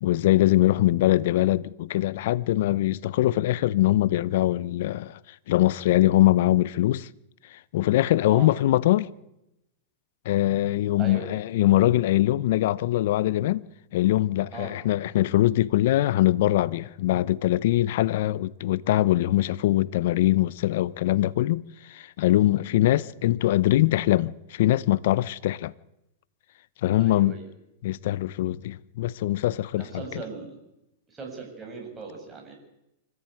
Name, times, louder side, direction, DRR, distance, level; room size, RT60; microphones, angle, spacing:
voice 1, 0.0-5.2 5.5-7.1 7.5-9.1 10.2-13.6 13.9-21.6 21.9-25.7 26.8-27.3 27.8-29.9, left 15 dB, 65° left, 0.8 m, -22 dB
voice 2, 27.0-27.5 29.8-30.6 31.1-32.6, right 4 dB, 15° right, 7.5 m, -39 dB
25.0 x 15.0 x 9.2 m
hypercardioid pair, 120°, 0 cm